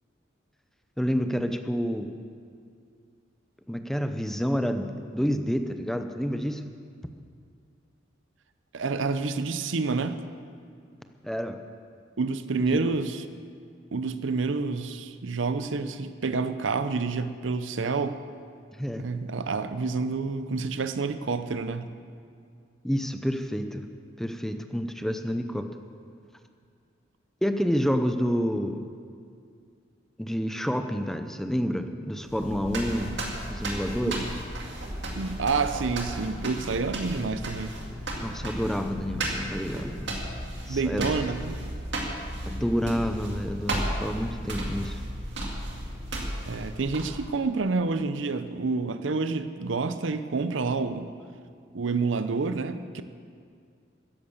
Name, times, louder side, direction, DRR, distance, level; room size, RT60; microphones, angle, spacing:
voice 1, 1.0-2.1 3.7-4.9 5.1-6.6 11.2-11.6 12.7-12.8 18.8-19.0 22.8-23.9 24.2-25.6 27.4-28.9 30.2-33.1 33.5-34.2 38.2-40.2 40.7-41.1 42.5-45.0, equal, ahead, 7 dB, 0.6 m, -28 dB
voice 2, 8.7-10.2 12.2-13.2 13.9-18.2 19.0-21.9 34.1-34.3 35.2-37.8 38.4-38.5 40.7-41.5 46.5-51.1 51.7-53.0, right 4 dB, 80° right, 10 dB, 0.6 m, -28 dB
sound 1, 32.2-47.4, right 1 dB, 65° right, 2.2 m, -34 dB
13.5 x 10.5 x 7.2 m, 2.3 s
head